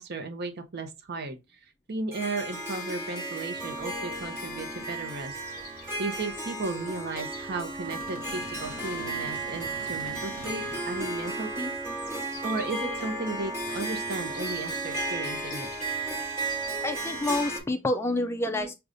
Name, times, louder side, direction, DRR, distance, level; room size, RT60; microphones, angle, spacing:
voice 1, 0.0-1.4 1.9-5.3 5.7-11.8 12.4-15.7 18.5-18.7, right 3 dB, 50° right, 0.7 m, -35 dB
Harp, 2.1-17.6, right 2 dB, 10° right, 1.3 m, -34 dB
sound 1, 3.5-17.7, left 5 dB, 45° left, 1.2 m, -50 dB
sound 2, 7.8-11.1, right 2 dB, 90° right, 1.3 m, -45 dB
voice 2, 16.8-18.7, left 2 dB, 10° left, 0.3 m, -28 dB
6.3 x 2.3 x 2.5 m
head